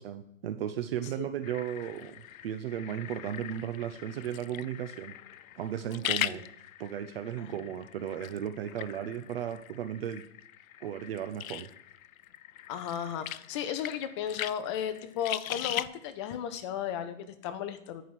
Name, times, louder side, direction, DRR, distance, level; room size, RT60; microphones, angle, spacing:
voice 1, 0.0-5.1 5.6-6.4 6.8-10.2 10.8-11.7, right 10 dB, 45° right, 10 dB, 0.6 m, -35 dB
sound 1, 1.4-15.9, left 12 dB, 85° left, 0.5 m, -40 dB
voice 2, 12.7-18.0, left 9 dB, 20° left, 9 dB, 0.5 m, -35 dB
10.5 x 4.9 x 6.0 m, 0.76 s
hypercardioid pair, 145°, 40 cm